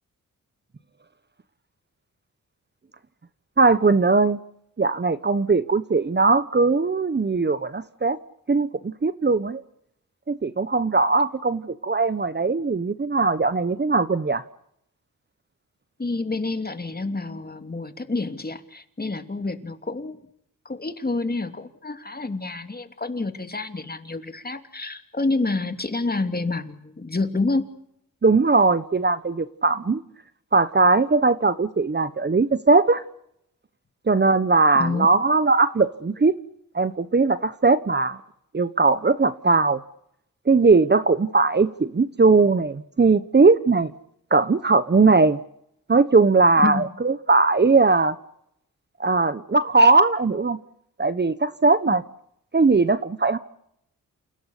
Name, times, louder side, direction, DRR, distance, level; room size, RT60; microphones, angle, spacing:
voice 1, 3.6-4.4 4.8-8.2 8.5-9.6 10.3-14.4 28.2-30.0 30.5-33.0 34.1-36.3 36.7-38.2 38.5-39.8 40.5-43.9 44.3-45.4 45.9-48.1 49.0-50.6 51.0-52.0 52.5-53.4, right 3 dB, 30° right, 14 dB, 1.2 m, -19 dB
voice 2, 16.0-20.2 20.6-27.7 34.7-35.1 46.6-46.9, left 3 dB, 25° left, 8 dB, 2.9 m, -28 dB
29.0 x 17.0 x 8.4 m, 0.75 s
cardioid pair, 70°, 34 cm